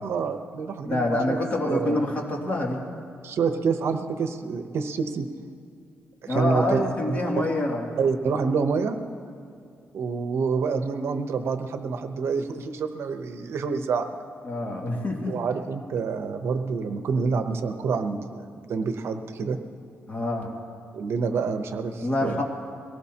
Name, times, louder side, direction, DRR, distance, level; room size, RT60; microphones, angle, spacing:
voice 1, 0.0-1.4 1.7-2.0 3.2-5.3 6.2-7.5 8.0-9.0 9.9-14.1 15.3-19.6 20.9-22.4, right 5 dB, 70° right, 7 dB, 0.8 m, -27 dB
voice 2, 0.9-2.8 6.3-7.9 14.4-15.3 20.1-20.5 22.0-22.4, left 1 dB, 35° left, 0 dB, 2.4 m, -26 dB
22.5 x 18.5 x 2.9 m, 2.5 s
cardioid pair, 115°, 5 cm